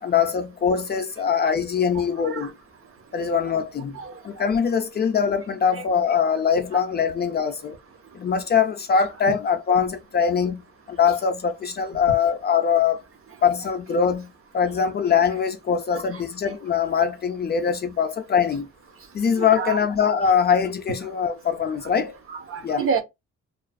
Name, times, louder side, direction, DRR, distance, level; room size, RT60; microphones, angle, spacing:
voice 1, 0.0-2.5 3.1-7.8 8.1-10.6 10.9-13.0 13.4-18.7 19.1-22.1 22.6-22.9, left 7 dB, 35° left, 0.4 m, -22 dB
voice 2, 19.4-19.8 22.3-23.0, right 6 dB, 45° right, 0.7 m, -28 dB
2.3 x 2.3 x 2.3 m
cardioid pair, 90°, 30 cm